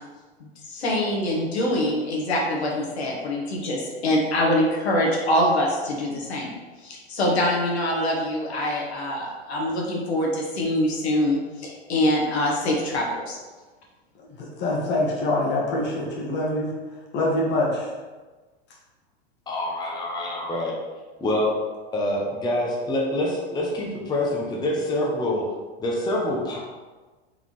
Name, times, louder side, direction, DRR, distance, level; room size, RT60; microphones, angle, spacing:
voice 1, 0.4-6.5 6.8-13.4, left 1 dB, 80° left, -2 dB, 1.3 m, -24 dB
voice 2, 14.3-16.7 17.1-17.9, left 1 dB, 35° left, -3 dB, 1.3 m, -25 dB
voice 3, 19.5-20.8 21.2-21.6 21.9-25.4 25.8-26.6, left 1 dB, 15° left, -3 dB, 0.7 m, -26 dB
4.0 x 3.6 x 3.1 m, 1.3 s
hypercardioid pair, 105°, 32 cm